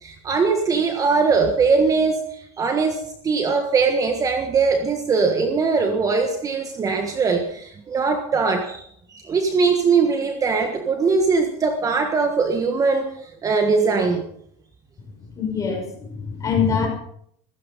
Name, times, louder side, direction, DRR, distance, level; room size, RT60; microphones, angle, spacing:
voice 1, 0.0-14.2, right 4 dB, 25° right, 5 dB, 1.5 m, -21 dB
voice 2, 15.2-16.9, left 6 dB, 20° left, 2 dB, 6.2 m, -24 dB
16.0 x 15.5 x 5.6 m, 0.67 s
supercardioid pair, 145°, 15 cm